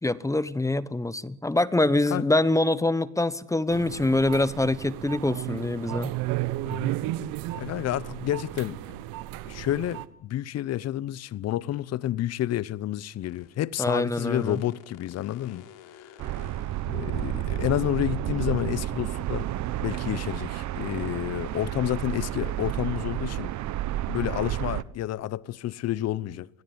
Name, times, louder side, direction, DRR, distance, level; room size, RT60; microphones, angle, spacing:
voice 1, 0.0-6.1 13.8-14.6, left 2 dB, 10° left, 1.1 m, -25 dB
sound 1, 3.7-10.1, right 16 dB, 70° right, 1.4 m, -33 dB
voice 2, 7.5-8.8 9.4-15.6 15.9-16.1 16.9-19.5 19.8-23.5 24.1-26.5, left 13 dB, 45° left, 0.9 m, -30 dB
sound 2, 13.2-13.6 14.4-17.0, left 10 dB, 60° left, 3.3 m, -51 dB
sound 3, 16.2-24.8, right 13 dB, 50° right, 1.2 m, -31 dB
25.5 x 16.5 x 9.6 m
supercardioid pair, 100°, 36 cm